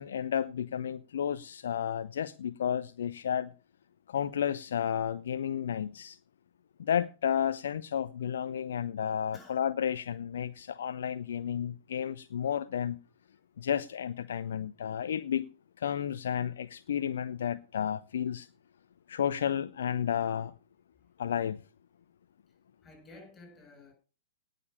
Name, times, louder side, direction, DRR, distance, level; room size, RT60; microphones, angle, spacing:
voice 1, 0.0-3.5 4.1-6.2 6.8-13.0 13.6-15.5 15.8-18.5 19.1-20.5 21.2-21.6, left 9 dB, 55° left, 0.6 m, -32 dB
voice 2, 9.3-9.6 22.8-23.9, left 2 dB, 15° left, 7.2 m, -52 dB
18.0 x 6.8 x 5.3 m
figure-of-eight pair, 110°, 0 cm